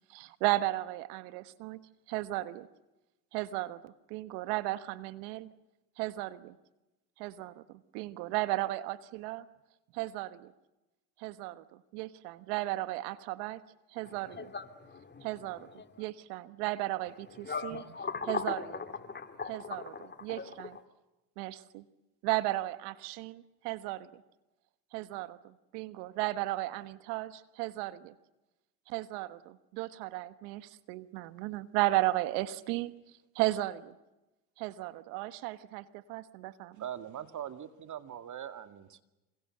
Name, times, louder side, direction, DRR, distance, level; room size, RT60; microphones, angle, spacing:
voice 1, 0.1-1.8 2.1-2.7 3.3-5.5 6.0-6.5 7.2-7.6 7.9-9.4 9.9-10.5 11.2-13.6 13.9-14.5 15.2-15.7 16.0-17.8 18.3-18.6 19.5-19.9 20.2-20.7 21.4-21.8 22.2-24.2 24.9-28.1 28.9-32.9 33.3-33.9 34.6-36.8, right 17 dB, 70° right, 1.4 m, -35 dB
voice 2, 14.0-15.9 17.4-20.8, left 5 dB, 20° left, 2.8 m, -39 dB
voice 3, 36.8-39.0, right 10 dB, 40° right, 2.2 m, -41 dB
28.0 x 26.5 x 7.8 m
hypercardioid pair, 90°, 48 cm